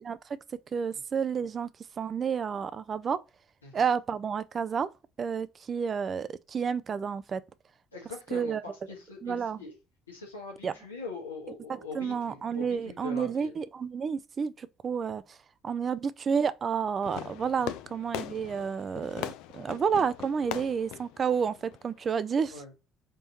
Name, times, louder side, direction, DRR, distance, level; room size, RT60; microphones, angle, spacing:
voice 1, 0.7-1.7 2.0-3.2 3.7-4.9 5.2-7.4 8.3-8.6 9.2-9.6 10.6-10.7 11.7-15.4 15.6-22.6, right 6 dB, 40° right, 0.3 m, -30 dB
voice 2, 7.9-9.7 10.1-13.5 17.5-17.8 22.5-22.7, left 3 dB, 80° left, 1.2 m, -42 dB
Fireworks, 17.0-22.1, left 13 dB, 65° left, 0.3 m, -41 dB
3.9 x 3.7 x 2.9 m
figure-of-eight pair, 50°, 0 cm